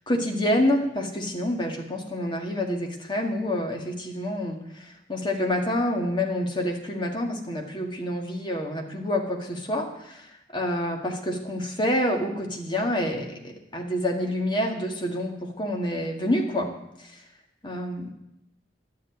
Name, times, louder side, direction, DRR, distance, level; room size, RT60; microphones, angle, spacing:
voice 1, 0.1-4.6 5.1-16.7 17.6-18.1, left 1 dB, 25° left, 2 dB, 1.9 m, -27 dB
11.5 x 7.6 x 9.5 m, 0.83 s
head